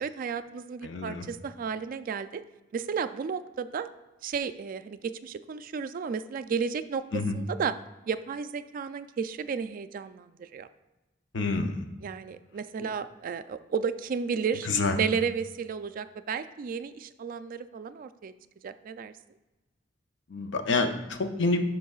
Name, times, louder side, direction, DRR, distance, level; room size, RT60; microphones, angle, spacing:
voice 1, 0.0-2.4 2.7-3.9 4.2-7.0 7.3-7.7 8.1-10.7 12.0-18.3 18.6-19.1, right 6 dB, 45° right, 11 dB, 0.3 m, -33 dB
voice 2, 0.8-1.2 7.1-7.4 11.3-11.8 14.6-15.0 20.3-21.6, left 3 dB, 65° left, 6 dB, 0.6 m, -27 dB
11.5 x 4.5 x 2.4 m, 1.1 s
head